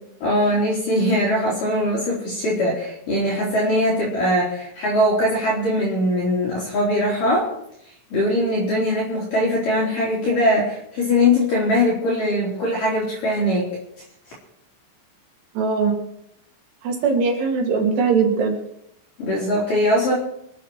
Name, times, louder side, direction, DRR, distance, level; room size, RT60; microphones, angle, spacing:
voice 1, 0.2-7.5 8.1-13.7 19.2-20.1, left 1 dB, 45° left, -5 dB, 4.3 m, -21 dB
voice 2, 15.6-16.0 16.8-18.6, right 5 dB, 60° right, 0 dB, 4.5 m, -20 dB
26.5 x 9.3 x 4.5 m, 0.76 s
omnidirectional pair, 5.6 m